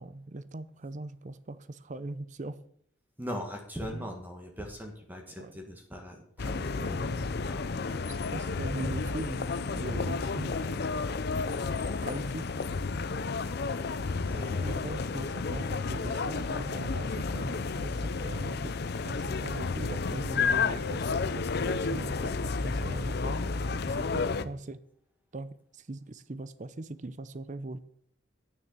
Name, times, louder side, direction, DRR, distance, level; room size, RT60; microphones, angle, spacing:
voice 1, 0.0-2.6 3.9-4.1 5.4-5.5 6.8-7.3 8.1-10.7 12.0-12.5 14.6-23.4 23.9-24.8 25.3-27.8, right 2 dB, 40° right, 15 dB, 0.6 m, -41 dB
voice 2, 3.2-7.0 7.5-8.0 14.2-14.9 24.0-24.5, equal, 10° right, 2 dB, 1.5 m, -41 dB
sound 1, 6.4-24.4, left 4 dB, 55° left, 0.6 m, -31 dB
9.3 x 6.5 x 8.1 m, 0.65 s
head